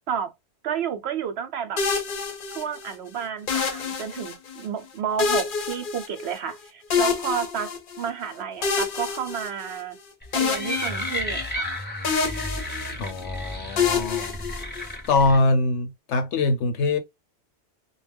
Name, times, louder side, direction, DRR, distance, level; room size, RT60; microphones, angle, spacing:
voice 1, 0.6-1.8 2.5-7.7 8.0-10.0 10.3-11.7, right 8 dB, 70° right, 0.9 m, -31 dB
sound 1, 1.8-2.9 3.5-4.6 5.2-6.6 6.9-8.1 8.6-10.0 10.3-11.7 12.0-13.2 13.8-15.1, left 5 dB, 55° left, 0.8 m, -27 dB
sound 2, 10.2-15.4, left 1 dB, 10° left, 0.7 m, -32 dB
voice 2, 13.0-14.3 15.1-17.0, left 3 dB, 90° left, 1.0 m, -23 dB
2.4 x 2.2 x 3.3 m
omnidirectional pair, 1.1 m